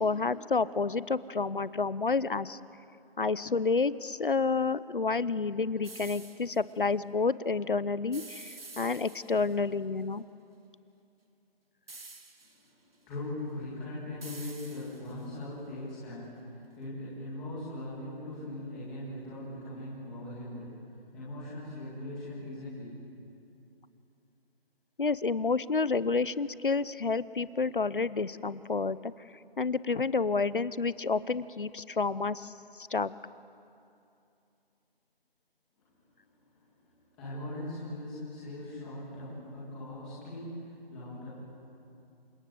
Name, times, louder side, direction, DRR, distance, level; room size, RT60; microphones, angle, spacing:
voice 1, 0.0-2.6 3.2-10.2 25.0-29.1 29.6-33.1, left 4 dB, 60° left, 17 dB, 0.9 m, -29 dB
sound 1, 5.8-6.6 8.1-9.6 11.9-12.7 14.2-15.2, right 3 dB, 70° right, 3.0 m, -48 dB
voice 2, 12.4-23.1 35.8-36.0 36.4-41.3, left 1 dB, 5° left, -10 dB, 2.0 m, -40 dB
28.5 x 26.5 x 7.9 m, 2.6 s
figure-of-eight pair, 180°, 30 cm